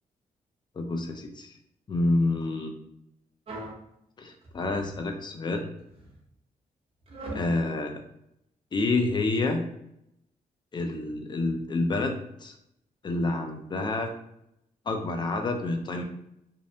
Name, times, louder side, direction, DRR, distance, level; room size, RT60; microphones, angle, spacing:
voice 1, 0.8-1.5 1.9-2.7 4.2-5.7 7.3-8.0 8.7-9.7 10.7-12.5 13.0-14.1 14.9-16.0, left 2 dB, 30° left, 4 dB, 0.4 m, -28 dB
sound 1, 3.5-3.8 4.4-5.1 5.8-6.1 7.1-7.5, right 2 dB, 40° right, 0.7 m, -40 dB
2.6 x 2.1 x 2.6 m, 0.79 s
cardioid pair, 95°, 15 cm